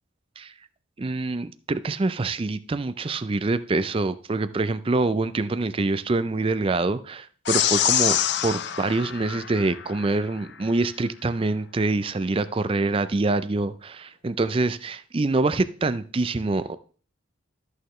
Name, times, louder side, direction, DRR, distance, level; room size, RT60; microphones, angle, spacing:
voice 1, 1.0-16.8, right 3 dB, 25° right, 0.4 m, -25 dB
sound 1, 7.5-10.1, left 11 dB, 55° left, 0.4 m, -25 dB
13.0 x 6.5 x 3.2 m
head